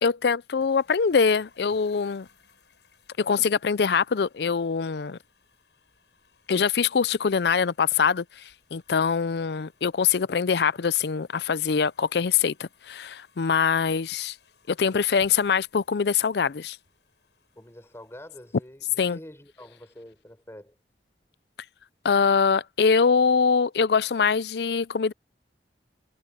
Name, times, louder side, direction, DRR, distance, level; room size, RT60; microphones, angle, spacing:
voice 1, 0.0-2.3 3.2-5.2 6.5-8.4 8.7-14.3 14.7-16.8 19.0-19.2 22.0-25.1, left 6 dB, 65° left, 0.5 m, -23 dB
sound 1, 0.5-19.4, left 4 dB, 80° left, 6.8 m, -63 dB
voice 2, 17.6-20.8, left 1 dB, 15° left, 5.3 m, -46 dB
head